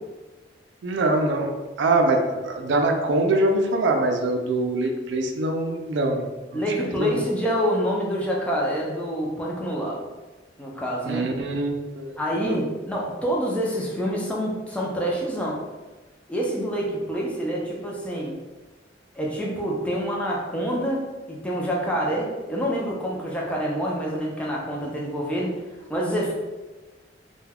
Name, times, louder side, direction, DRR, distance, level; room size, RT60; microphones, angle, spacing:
voice 1, 0.8-1.5 1.8-6.2 6.5-6.6 7.0-7.2 11.0-12.5, right 2 dB, 70° right, 3 dB, 0.4 m, -23 dB
voice 2, 6.5-10.1 10.6-11.3 12.2-15.6 16.3-18.3 19.2-25.5 25.9-26.3, equal, 5° left, -3 dB, 0.4 m, -27 dB
2.3 x 2.2 x 3.3 m, 1.2 s
head